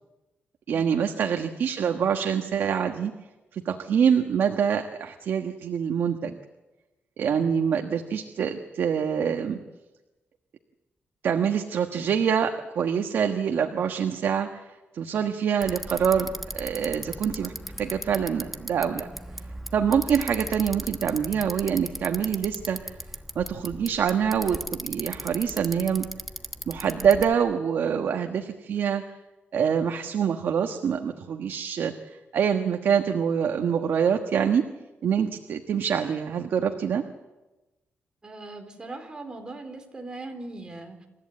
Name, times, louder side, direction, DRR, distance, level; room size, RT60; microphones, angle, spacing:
voice 1, 0.7-3.1 3.5-6.4 7.2-9.6 11.2-14.6 14.9-17.5 17.8-19.1 19.7-22.8 23.3-26.1 26.7-29.0 29.5-34.6 35.0-37.0, right 7 dB, 70° right, 5 dB, 1.4 m, -25 dB
Bicycle, 15.6-27.3, equal, 5° right, 1.1 m, -38 dB
voice 2, 38.2-41.1, right 2 dB, 20° right, 4 dB, 4.1 m, -40 dB
27.5 x 14.5 x 8.6 m, 1.1 s
cardioid pair, 120°, 4 cm